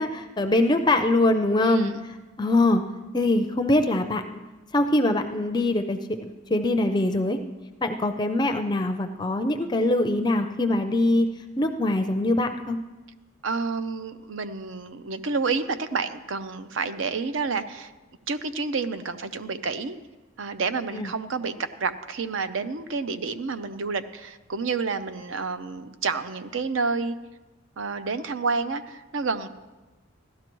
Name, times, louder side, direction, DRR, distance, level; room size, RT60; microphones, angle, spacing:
voice 1, 0.0-2.8 3.1-4.4 4.7-6.2 6.5-7.4 7.8-11.3 11.6-12.8 20.9-21.1, left 2 dB, 20° left, 6 dB, 0.4 m, -23 dB
voice 2, 1.6-2.0 13.4-17.9 18.3-20.0 20.4-27.1 27.8-29.5, right 4 dB, 65° right, 11 dB, 0.6 m, -29 dB
16.0 x 12.0 x 3.0 m, 1.2 s
head